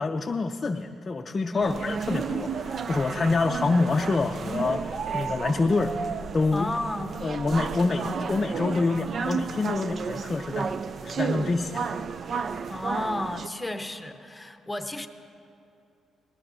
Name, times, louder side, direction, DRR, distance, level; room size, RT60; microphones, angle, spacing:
voice 1, 0.0-6.0 6.3-6.7 7.2-10.7 11.0-11.9, left 3 dB, 35° left, 4 dB, 0.5 m, -26 dB
voice 2, 1.5-1.8 6.5-7.2 12.7-15.1, left 1 dB, 10° left, 7 dB, 0.9 m, -32 dB
sound 1, 1.6-13.5, right 6 dB, 50° right, 0.4 m, -32 dB
20.0 x 18.5 x 2.7 m, 2.6 s
cardioid pair, 90°, 0 cm